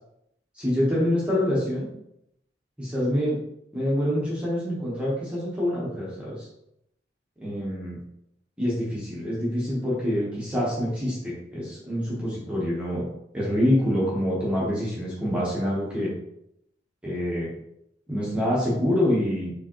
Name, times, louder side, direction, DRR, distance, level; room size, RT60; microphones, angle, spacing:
voice 1, 0.5-1.9 2.8-3.4 3.7-6.5 7.4-8.0 8.6-13.0 13.3-16.1 17.0-17.5 18.1-19.5, equal, 5° right, -7 dB, 1.2 m, -26 dB
5.0 x 3.2 x 3.0 m, 0.78 s
head